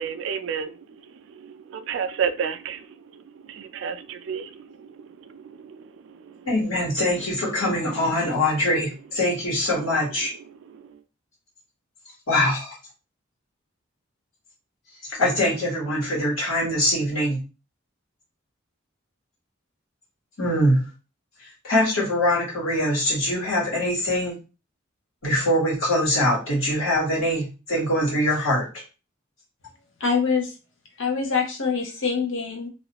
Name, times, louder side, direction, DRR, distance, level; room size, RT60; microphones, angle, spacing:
voice 1, 0.0-6.5 10.2-11.0, right 7 dB, 65° right, 0.3 m, -33 dB
voice 2, 6.5-10.3 12.3-12.8 15.1-17.4 20.4-20.8 21.4-24.4 25.2-28.6, left 1 dB, 85° left, 1.3 m, -23 dB
voice 3, 30.0-30.5 31.0-32.7, left 5 dB, 65° left, 0.7 m, -24 dB
2.4 x 2.3 x 2.8 m
head